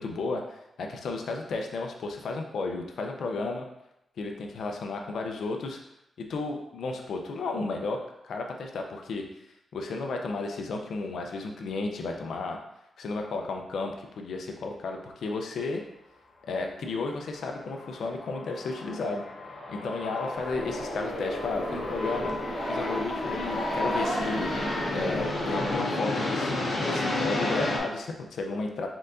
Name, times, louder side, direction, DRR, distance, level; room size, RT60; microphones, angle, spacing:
voice 1, 0.0-3.7 4.2-5.8 6.3-8.0 8.2-9.2 9.7-12.6 13.0-15.8 16.5-19.2 19.7-22.3 22.7-24.5 24.9-28.9, left 3 dB, 75° left, 2 dB, 0.5 m, -33 dB
sound 1, 17.1-27.8, left 2 dB, 60° left, 1.1 m, -32 dB
Growling, 20.4-25.7, right 1 dB, 30° right, 1.0 m, -35 dB
4.4 x 3.8 x 2.6 m, 0.84 s
wide cardioid pair, 110°, 0 cm